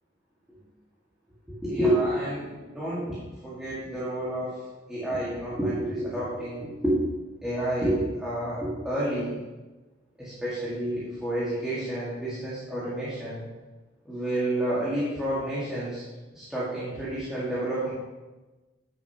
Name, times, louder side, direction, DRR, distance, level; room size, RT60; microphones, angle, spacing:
voice 1, 1.6-3.2 3.4-7.0 7.4-9.4 10.2-13.4 14.0-16.0 16.3-17.9, right 1 dB, 5° right, -10 dB, 1.7 m, -29 dB
8.8 x 6.7 x 2.8 m, 1.2 s
head